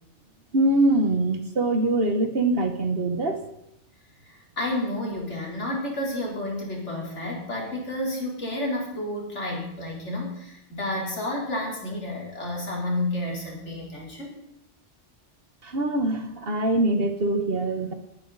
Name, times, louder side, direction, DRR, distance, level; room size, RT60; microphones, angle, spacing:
voice 1, 0.5-3.4 15.6-17.9, right 2 dB, 55° right, 7 dB, 1.5 m, -23 dB
voice 2, 4.2-14.3, left 1 dB, 75° left, -2 dB, 4.1 m, -30 dB
19.5 x 10.5 x 4.1 m, 0.77 s
omnidirectional pair, 1.2 m